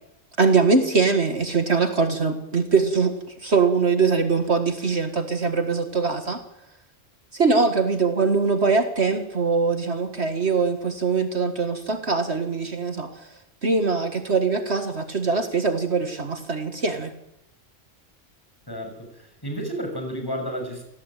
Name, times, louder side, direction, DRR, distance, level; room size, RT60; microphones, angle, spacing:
voice 1, 0.4-6.4 7.3-13.3 13.6-17.1, right 4 dB, 55° right, 7 dB, 2.1 m, -22 dB
voice 2, 18.7-20.8, equal, 15° left, 4 dB, 6.7 m, -31 dB
27.5 x 17.5 x 9.1 m, 0.85 s
omnidirectional pair, 1.3 m